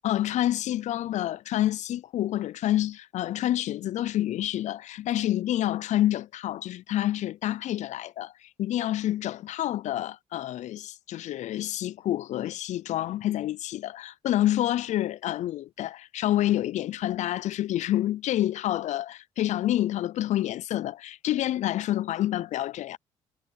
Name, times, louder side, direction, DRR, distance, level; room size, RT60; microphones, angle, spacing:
voice 1, 0.0-23.0, left 13 dB, 60° left, 0.4 m, -28 dB
supercardioid pair, 60°, 13 cm